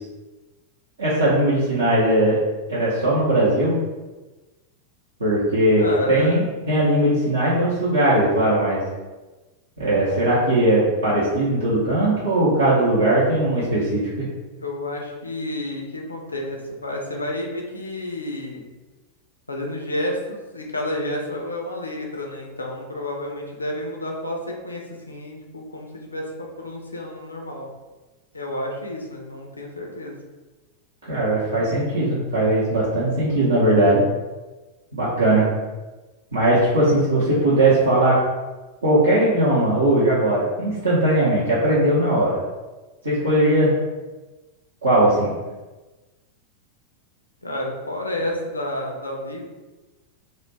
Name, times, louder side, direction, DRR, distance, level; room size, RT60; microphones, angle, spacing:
voice 1, 1.0-2.4 2.7-3.8 5.2-8.8 9.8-14.3 31.1-34.0 34.9-35.5 36.3-38.2 38.8-42.4 43.0-43.7 44.8-45.3, right 1 dB, 70° right, -8 dB, 0.6 m, -19 dB
voice 2, 5.7-6.4 14.6-18.7 19.5-27.7 28.3-30.2 47.4-49.4, left 1 dB, 80° left, 0 dB, 0.4 m, -30 dB
2.4 x 2.1 x 3.1 m, 1.2 s
figure-of-eight pair, 90°, 0 cm